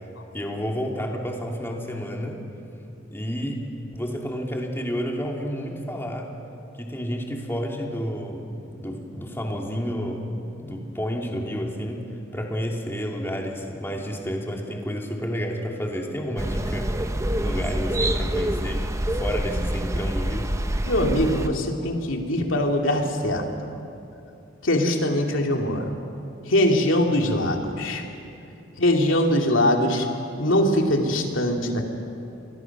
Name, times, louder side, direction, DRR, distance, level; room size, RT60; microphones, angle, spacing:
voice 1, 0.3-2.4 3.1-3.6 3.9-6.3 6.8-10.3 10.6-12.1 12.3-16.9 17.3-20.5, equal, 10° left, 0 dB, 2.8 m, -30 dB
sound 1, 16.4-21.5, right 1 dB, 15° right, 0.8 m, -26 dB
voice 2, 20.9-23.4 24.6-26.0 26.4-28.0 28.8-30.1 30.4-31.8, left 1 dB, 90° left, 2 dB, 2.7 m, -22 dB
28.0 x 22.0 x 6.1 m, 2.7 s
head